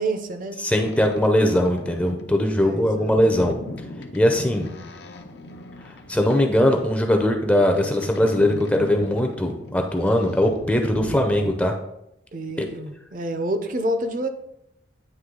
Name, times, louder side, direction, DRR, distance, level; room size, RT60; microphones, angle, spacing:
voice 1, 0.0-0.6 2.6-3.1 4.4-4.8 12.3-14.3, right 1 dB, 45° right, 7 dB, 0.5 m, -28 dB
voice 2, 0.6-3.6 4.1-4.7 6.1-11.7 12.6-12.7, left 1 dB, 5° left, 3 dB, 0.5 m, -20 dB
Boat Water vehicle, 0.7-11.5, left 2 dB, 65° left, 0.6 m, -39 dB
9.3 x 3.1 x 3.7 m, 0.82 s
head